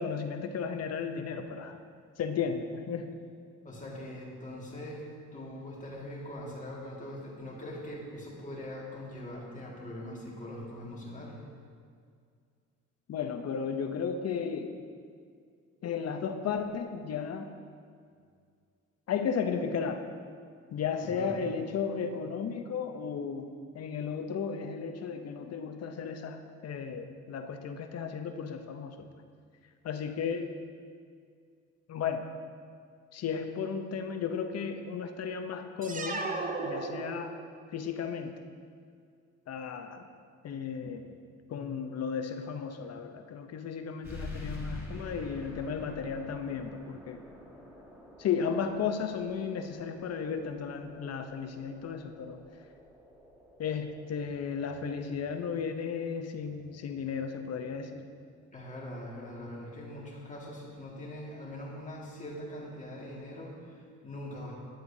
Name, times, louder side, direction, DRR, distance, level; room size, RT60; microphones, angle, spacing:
voice 1, 0.0-1.8 2.2-3.1 13.1-14.8 15.8-17.5 19.1-20.0 20.7-23.5 23.7-29.1 29.8-30.5 31.9-32.2 33.1-36.3 36.6-37.4 37.7-38.3 39.5-40.1 40.4-41.1 41.5-47.2 48.2-52.4 53.6-58.1, left 6 dB, 55° left, 7 dB, 0.7 m, -34 dB
voice 2, 3.6-11.4 21.0-21.3 58.5-64.6, left 1 dB, 25° left, -4 dB, 1.8 m, -42 dB
sound 1, 35.8-37.7, right 3 dB, 25° right, 0.7 m, -35 dB
sound 2, 44.0-59.1, left 1 dB, 5° right, 1.9 m, -48 dB
10.0 x 7.7 x 2.7 m, 2.1 s
cardioid pair, 90°, 30 cm